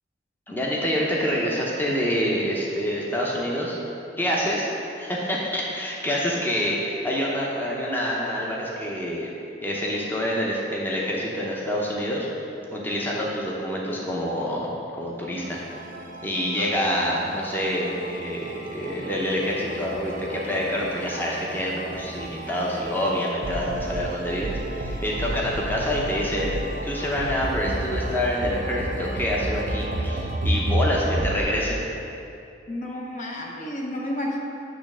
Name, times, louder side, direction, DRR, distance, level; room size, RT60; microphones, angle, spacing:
voice 1, 0.5-3.8 4.2-4.7 5.0-9.3 9.6-12.3 12.7-14.7 15.0-15.6 16.2-31.8, equal, 10° left, -4 dB, 0.7 m, -27 dB
sound 1, 15.4-31.4, right 1 dB, 45° right, 0.5 m, -32 dB
voice 2, 32.7-34.4, left 1 dB, 45° left, -1 dB, 0.8 m, -31 dB
8.7 x 3.2 x 6.1 m, 2.7 s
head